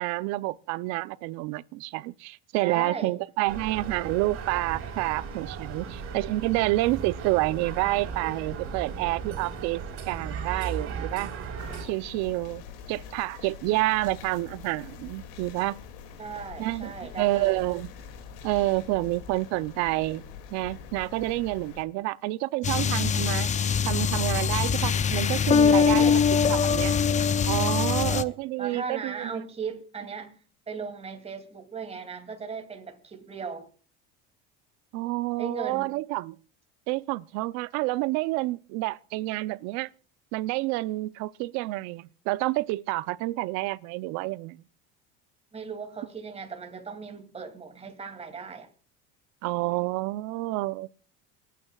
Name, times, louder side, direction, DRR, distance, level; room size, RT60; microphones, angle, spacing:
voice 1, 0.0-11.3 11.8-12.6 12.9-15.8 16.6-17.9 18.4-20.2 20.5-23.5 23.9-27.0 27.4-29.3 34.9-36.4 36.9-39.9 40.3-44.6 49.4-51.0, right 19 dB, 65° right, 0.7 m, -29 dB
voice 2, 2.6-3.1 5.8-5.9 16.2-17.6 25.9-26.2 27.9-30.4 30.7-33.7 35.4-35.9 45.5-48.7, right 5 dB, 20° right, 2.6 m, -38 dB
sound 1, 3.5-11.9, right 5 dB, 50° right, 4.6 m, -36 dB
sound 2, 11.6-21.8, left 7 dB, 80° left, 2.5 m, -44 dB
sound 3, 22.6-28.2, left 6 dB, 25° left, 0.6 m, -23 dB
27.0 x 9.3 x 2.4 m
supercardioid pair, 120°, 29 cm